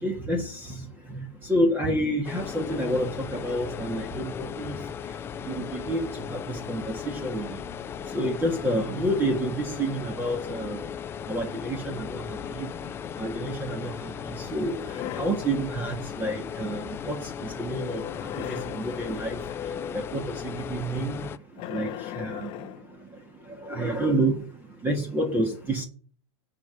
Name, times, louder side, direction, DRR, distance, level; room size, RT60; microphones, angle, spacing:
voice 1, 0.0-0.8 1.1-4.8 5.5-7.5 8.1-10.8 11.3-12.7 13.2-14.7 15.2-19.4 19.9-21.1 21.7-21.9 22.2-22.5 23.6-24.4 24.8-25.8, right 1 dB, 10° right, 3 dB, 1.7 m, -29 dB
sound 1, 2.2-21.4, left 8 dB, 15° left, 0.4 m, -37 dB
sound 2, 14.6-15.5 17.7-20.2 21.6-22.9, left 11 dB, 30° left, 0.8 m, -38 dB
10.0 x 4.9 x 8.1 m, 0.41 s
supercardioid pair, 155°, 15 cm